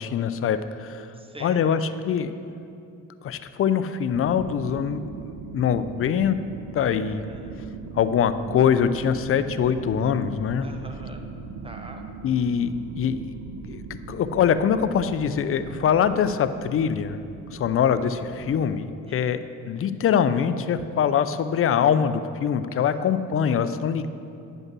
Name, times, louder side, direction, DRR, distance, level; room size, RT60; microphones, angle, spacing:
voice 1, 0.0-1.1 1.4-2.6 3.2-5.0 5.5-6.4 6.7-7.2 7.9-10.7 12.2-13.3 13.6-17.2 17.5-24.1, left 8 dB, 45° left, 12 dB, 0.5 m, -23 dB
voice 2, 1.1-1.7 7.1-7.7 10.6-11.3 11.6-12.0 19.1-19.4 22.7-23.5, right 1 dB, 20° right, 4 dB, 1.0 m, -44 dB
sound 1, 4.1-18.6, right 5 dB, 80° right, 0.6 m, -39 dB
9.7 x 5.4 x 6.0 m, 2.6 s
cardioid pair, 90°, 30 cm